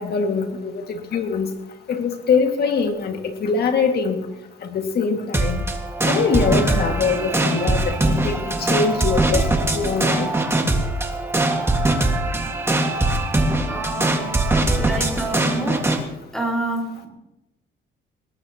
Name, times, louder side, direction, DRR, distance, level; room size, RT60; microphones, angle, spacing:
voice 1, 0.0-1.5 1.9-4.2 4.6-5.6 6.0-9.5 9.7-10.3, left 5 dB, 55° left, 4 dB, 2.0 m, -23 dB
sound 1, 5.3-16.0, right 2 dB, 15° right, 1.8 m, -21 dB
voice 2, 13.7-14.3 14.8-15.8 16.3-17.1, right 2 dB, 5° left, -1 dB, 4.7 m, -27 dB
20.0 x 19.0 x 2.9 m, 0.94 s
cardioid pair, 140°, 19 cm